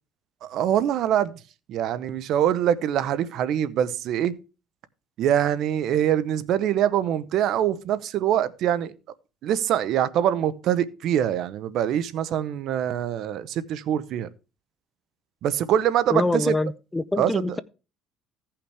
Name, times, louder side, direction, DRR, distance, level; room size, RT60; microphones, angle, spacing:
voice 1, 0.4-1.4 1.7-4.3 5.2-8.9 9.4-14.3 15.4-16.6 17.2-17.6, right 10 dB, 60° right, 0.8 m, -24 dB
voice 2, 16.1-17.6, left 2 dB, 10° left, 0.5 m, -25 dB
16.0 x 5.8 x 3.3 m
cardioid pair, 115°, 0 cm